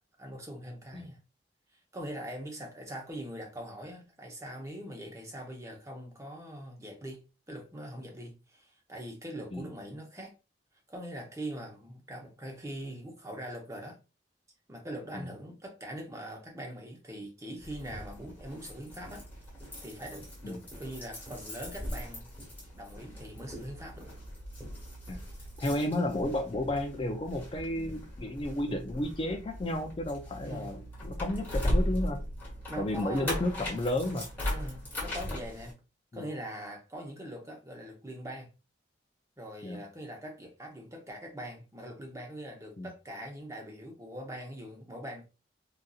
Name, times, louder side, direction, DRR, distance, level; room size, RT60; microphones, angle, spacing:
voice 1, 0.2-1.2 1.7-10.3 10.9-14.0 14.7-19.2 19.8-22.3 22.7-24.1 30.5-30.7 32.7-33.4 34.5-35.8 36.1-38.5 39.4-45.2, right 1 dB, 15° right, 0.9 m, -42 dB
sound 1, 17.6-35.7, left 1 dB, 10° left, 1.3 m, -38 dB
voice 2, 25.6-32.2 32.8-34.3 36.1-36.3 39.6-39.8 42.8-42.9, left 1 dB, 30° left, 0.4 m, -32 dB
4.0 x 2.6 x 2.3 m
head